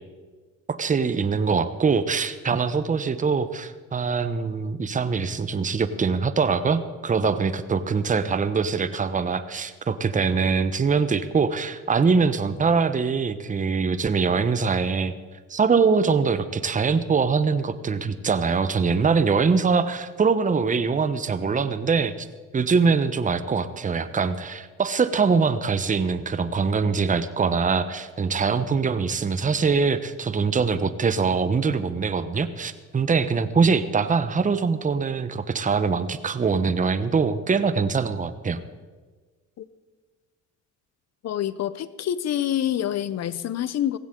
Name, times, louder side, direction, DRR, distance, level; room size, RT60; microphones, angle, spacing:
voice 1, 0.7-15.1 15.5-22.3 22.5-38.6, right 5 dB, 25° right, 12 dB, 0.8 m, -23 dB
voice 2, 41.2-44.0, left 11 dB, 60° left, 16 dB, 0.7 m, -27 dB
16.5 x 15.5 x 3.8 m, 1.4 s
cardioid pair, 90°, 30 cm